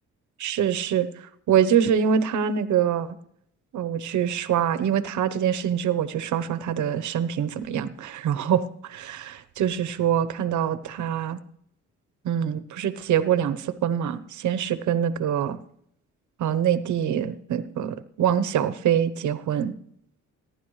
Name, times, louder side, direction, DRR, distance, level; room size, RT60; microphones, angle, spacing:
voice 1, 0.4-3.1 3.7-11.4 12.2-15.6 16.4-19.7, right 9 dB, 70° right, 14 dB, 1.1 m, -25 dB
22.5 x 11.0 x 3.2 m, 0.71 s
cardioid pair, 90°, 30 cm